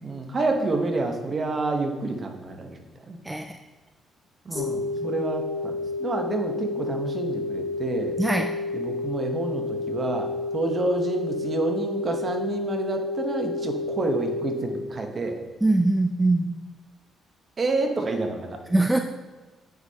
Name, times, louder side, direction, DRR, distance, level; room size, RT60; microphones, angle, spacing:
voice 1, 0.0-2.8 3.1-3.2 4.4-5.7 6.0-8.2 8.7-15.4 17.6-18.6, right 3 dB, 40° right, 4 dB, 1.1 m, -28 dB
sound 1, 4.5-14.6, left 3 dB, 45° left, 1.8 m, -30 dB
voice 2, 8.2-8.5 15.6-16.5 18.7-19.0, right 2 dB, 10° right, 4 dB, 0.4 m, -22 dB
8.7 x 6.3 x 2.9 m, 1.2 s
cardioid pair, 90°, 0 cm